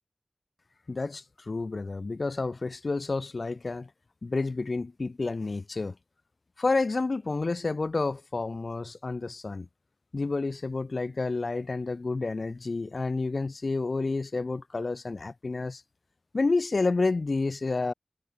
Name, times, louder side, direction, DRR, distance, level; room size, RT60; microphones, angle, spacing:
voice 1, 0.9-3.9 4.2-5.9 6.6-9.7 10.1-15.8 16.3-17.9, left 3 dB, 70° left, 4.6 m, -29 dB
wide cardioid pair, 50°, 0 cm